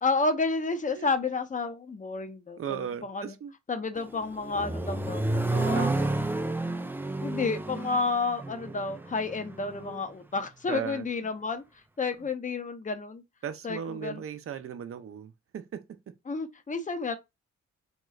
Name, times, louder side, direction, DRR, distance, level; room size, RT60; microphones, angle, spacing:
voice 1, 0.0-3.3 3.7-5.9 6.6-6.7 7.2-11.6 12.0-13.2 13.6-14.2 16.3-17.2, left 4 dB, 25° left, 0.7 m, -31 dB
voice 2, 2.6-3.5 5.5-6.2 10.7-11.3 12.2-12.3 13.4-16.1, right 8 dB, 50° right, 0.6 m, -37 dB
Accelerating revving vroom, 4.0-10.0, right 2 dB, 5° right, 0.4 m, -31 dB
3.0 x 3.0 x 2.4 m
cardioid pair, 60°, 30 cm